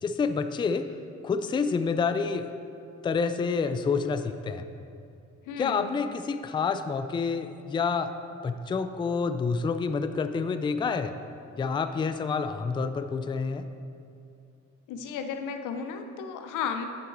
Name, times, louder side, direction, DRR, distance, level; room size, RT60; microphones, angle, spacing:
voice 1, 0.0-0.9 1.2-2.5 3.0-4.7 5.6-8.1 8.4-11.1 11.6-13.6, left 5 dB, 15° left, 9 dB, 0.3 m, -28 dB
voice 2, 5.5-5.9 14.9-16.9, left 6 dB, 90° left, 6 dB, 0.7 m, -34 dB
8.9 x 5.9 x 3.9 m, 2.5 s
cardioid pair, 90°, 30 cm